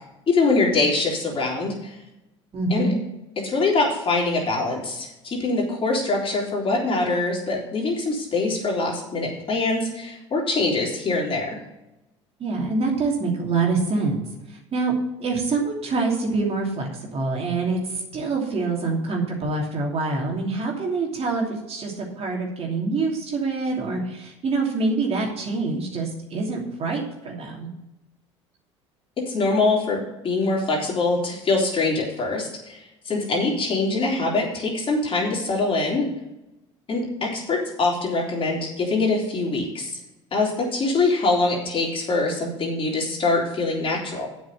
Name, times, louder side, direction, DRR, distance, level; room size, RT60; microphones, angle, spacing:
voice 1, 0.3-2.0 2.7-2.9 3.4-11.6 29.3-36.1 36.9-40.0 40.3-44.3, left 3 dB, 35° left, -2 dB, 3.7 m, -24 dB
voice 2, 2.5-3.0 12.4-14.2 14.7-14.9 15.2-27.7, right 3 dB, 40° right, -1 dB, 2.9 m, -25 dB
7.9 x 6.4 x 7.9 m, 0.93 s
hypercardioid pair, 75°, 15 cm